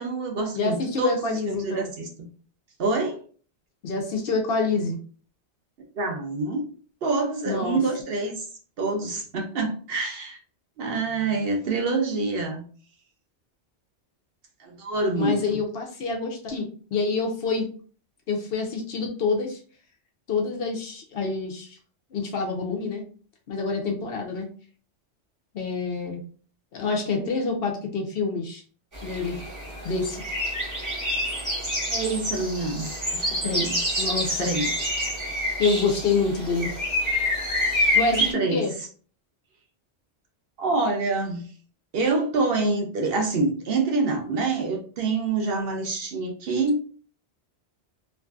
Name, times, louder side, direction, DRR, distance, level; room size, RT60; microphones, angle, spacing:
voice 1, 0.0-2.1 2.8-3.2 6.0-6.6 7.0-8.5 8.8-10.4 10.8-12.6 14.6-15.6 27.1-27.6 31.9-34.1 34.4-34.7 38.1-38.6 40.6-41.5 41.9-46.9, right 3 dB, 60° right, 2 dB, 0.8 m, -26 dB
voice 2, 0.5-1.9 3.8-5.0 7.5-7.8 15.1-17.7 18.3-19.6 20.3-21.8 22.1-23.0 23.5-24.5 25.5-26.2 26.7-28.6 29.0-29.4 29.8-30.2 33.4-34.5 35.6-36.7 37.9-38.7, left 4 dB, 65° left, 2 dB, 0.8 m, -27 dB
sound 1, 28.9-38.3, left 1 dB, 20° right, 0.8 m, -27 dB
2.6 x 2.5 x 2.3 m, 0.42 s
omnidirectional pair, 1.2 m